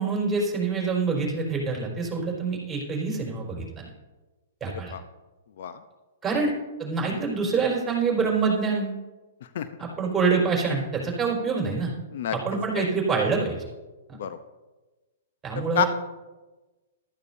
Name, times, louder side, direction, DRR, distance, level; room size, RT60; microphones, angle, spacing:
voice 1, 0.0-3.9 4.6-4.9 6.2-6.5 6.8-8.9 9.8-11.9 12.3-13.6 15.4-15.9, right 4 dB, 15° right, -2 dB, 4.5 m, -26 dB
voice 2, 4.7-5.0 5.6-5.8 7.1-7.2 9.5-9.7 12.1-12.4 12.8-12.9 14.2-14.4 15.8-15.9, left 10 dB, 60° left, 10 dB, 0.7 m, -28 dB
14.5 x 12.5 x 2.7 m, 1.2 s
hypercardioid pair, 120°, 0 cm